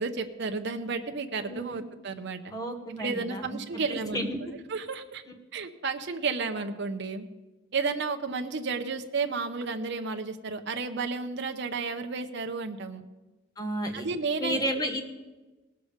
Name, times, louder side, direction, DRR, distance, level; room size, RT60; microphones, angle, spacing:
voice 1, 0.0-2.4 3.0-4.3 4.7-5.2 5.5-7.2 7.7-13.0 13.9-14.6, right 4 dB, 55° right, 6 dB, 0.7 m, -32 dB
voice 2, 1.4-1.8 2.5-3.6 3.9-4.4 13.6-14.1 14.4-15.0, equal, 15° left, 4 dB, 1.2 m, -32 dB
18.0 x 6.9 x 5.0 m, 1.2 s
head